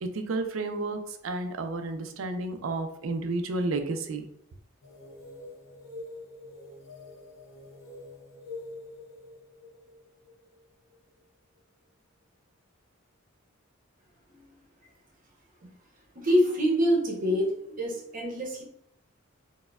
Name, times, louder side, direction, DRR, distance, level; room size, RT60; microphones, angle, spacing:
voice 1, 0.0-4.3, right 2 dB, 75° right, 7 dB, 0.4 m, -31 dB
sound 1, 4.8-11.2, left 2 dB, 75° left, 0.6 m, -46 dB
voice 2, 16.1-18.6, equal, 45° right, -1 dB, 0.8 m, -26 dB
4.2 x 2.1 x 2.3 m, 0.73 s
head